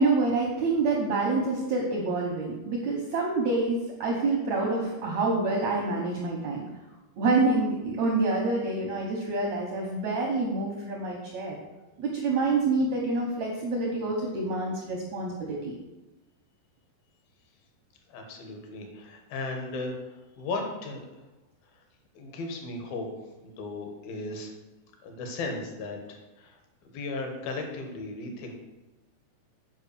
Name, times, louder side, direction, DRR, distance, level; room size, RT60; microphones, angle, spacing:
voice 1, 0.0-6.6 7.2-11.6 12.0-15.7, right 3 dB, 80° right, -1 dB, 1.6 m, -27 dB
voice 2, 18.1-21.0 22.2-23.1 23.4-24.5 25.0-26.6 26.8-28.5, left 3 dB, 70° left, 3 dB, 2.9 m, -36 dB
8.1 x 4.9 x 6.8 m, 1.0 s
omnidirectional pair, 4.7 m